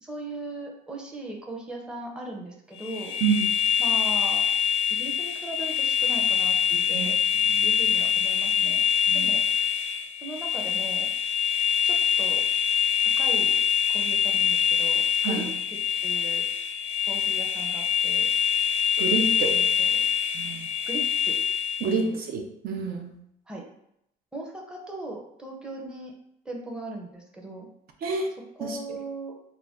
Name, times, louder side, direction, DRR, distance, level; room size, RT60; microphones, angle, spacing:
voice 1, 0.0-3.2 3.8-4.5 4.9-6.6 6.9-7.1 7.6-8.8 9.1-9.4 10.2-11.1 11.8-12.4 13.2-13.6 13.9-16.4 17.1-18.3 19.4-20.0 20.9-21.4 22.0-22.2 23.5-23.7 24.3-26.1 26.4-27.7 28.6-29.3, right 2 dB, 5° right, -1 dB, 0.5 m, -38 dB
sound 1, 2.8-22.0, left 8 dB, 85° left, 0.5 m, -24 dB
voice 2, 6.7-7.1 7.4-7.7 9.1-9.2 15.2-15.5 19.0-19.6 20.3-20.7 21.8-23.2 28.0-28.3 28.6-28.8, right 5 dB, 65° right, 3 dB, 0.5 m, -28 dB
2.5 x 2.2 x 3.4 m, 0.77 s
cardioid pair, 110°, 17 cm